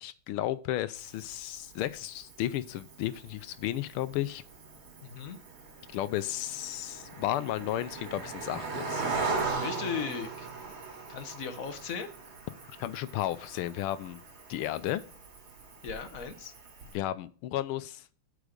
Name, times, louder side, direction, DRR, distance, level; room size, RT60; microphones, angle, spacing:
voice 1, 0.0-4.4 5.9-9.0 12.8-14.2 14.5-15.0 16.9-18.0, left 13 dB, 85° left, 14 dB, 1.5 m, -33 dB
Cricket, 1.0-16.9, right 4 dB, 70° right, 2.8 m, -40 dB
voice 2, 5.0-5.4 9.5-10.5 11.1-12.1 15.8-16.5, left 6 dB, 55° left, 8 dB, 0.9 m, -37 dB
8.4 x 5.0 x 6.6 m, 0.41 s
omnidirectional pair, 2.4 m